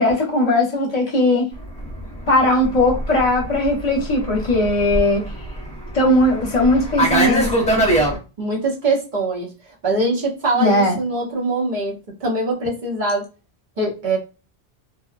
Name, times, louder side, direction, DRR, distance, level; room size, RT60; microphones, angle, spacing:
voice 1, 0.0-1.5 2.3-5.2 5.9-7.9 10.6-11.0, left 1 dB, 40° left, 0.9 m, -18 dB
Fixed-wing aircraft airplane, 1.7-8.2, right 1 dB, 5° left, 0.8 m, -23 dB
voice 2, 8.4-9.5 9.8-13.3 13.8-14.2, right 2 dB, 50° right, 0.9 m, -22 dB
2.7 x 2.1 x 2.3 m
omnidirectional pair, 1.1 m